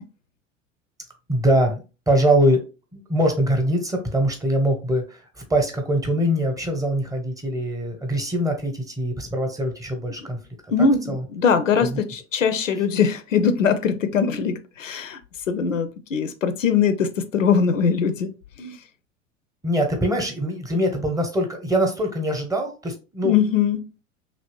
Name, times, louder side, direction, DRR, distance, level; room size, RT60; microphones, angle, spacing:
voice 1, 1.3-2.6 2.9-10.4 11.1-11.2 11.9-12.0 19.6-23.3, equal, 10° right, 0.8 m, -23 dB
voice 2, 10.7-15.2 15.5-18.8 23.2-23.9, left 6 dB, 85° left, 0.5 m, -21 dB
2.9 x 2.6 x 3.1 m
figure-of-eight pair, 80°, 37 cm